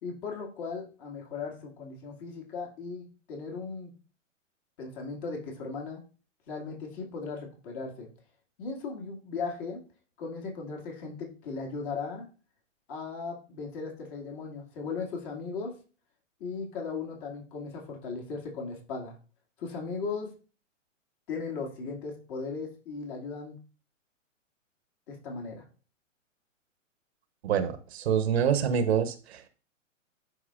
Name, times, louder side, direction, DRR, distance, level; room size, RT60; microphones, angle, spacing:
voice 1, 0.0-3.9 4.8-6.0 6.5-8.1 8.6-9.8 10.2-12.2 12.9-15.7 16.4-19.2 19.6-20.3 21.3-23.6 25.1-25.6, left 4 dB, 40° left, 0 dB, 2.4 m, -37 dB
voice 2, 27.4-29.4, right 8 dB, 55° right, 10 dB, 1.0 m, -26 dB
11.5 x 4.6 x 2.5 m, 0.36 s
hypercardioid pair, 120°, 39 cm